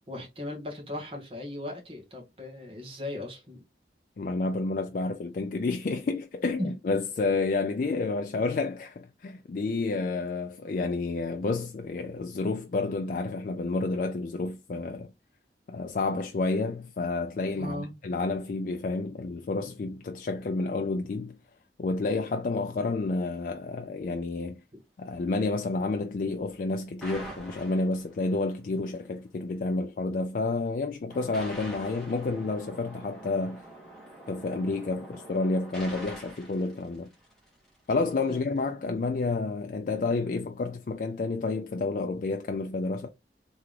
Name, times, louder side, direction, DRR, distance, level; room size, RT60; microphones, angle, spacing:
voice 1, 0.0-3.6 6.6-6.7 17.5-17.9 38.3-38.4, left 1 dB, 30° right, 1.6 m, -37 dB
voice 2, 4.2-15.1 15.7-21.4 21.8-24.6 25.0-33.7 34.3-37.1 37.9-43.1, left 3 dB, 50° left, 0.3 m, -30 dB
sound 1, 27.0-28.4 31.1-37.7, right 1 dB, 5° left, 1.7 m, -45 dB
3.6 x 3.4 x 3.2 m
head